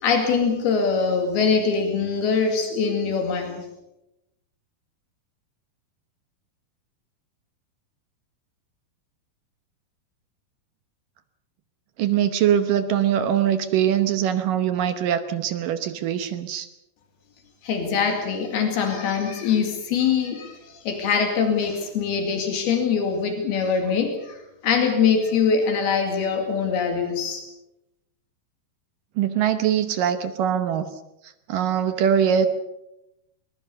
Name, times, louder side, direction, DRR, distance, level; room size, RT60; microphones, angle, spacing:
voice 1, 0.0-3.7 17.6-27.4, left 6 dB, 75° left, 4 dB, 4.2 m, -23 dB
voice 2, 12.0-16.7 29.2-30.9 31.5-32.5, right 9 dB, 70° right, 10 dB, 2.4 m, -22 dB
22.5 x 21.0 x 6.8 m, 0.91 s
omnidirectional pair, 4.5 m